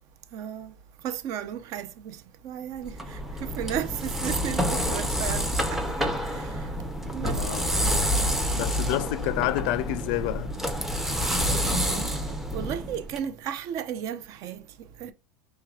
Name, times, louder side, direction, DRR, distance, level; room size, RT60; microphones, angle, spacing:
voice 1, 0.3-0.7 1.0-2.2 2.4-6.5 7.1-7.7 11.6-12.2 12.5-14.6 15.0-15.1, right 9 dB, 45° right, 0.5 m, -34 dB
sound 1, 2.8-13.2, equal, 5° right, 0.6 m, -28 dB
voice 2, 7.3-7.7 8.5-10.5, left 16 dB, 55° left, 0.4 m, -28 dB
4.5 x 3.3 x 2.3 m
supercardioid pair, 130°, 8 cm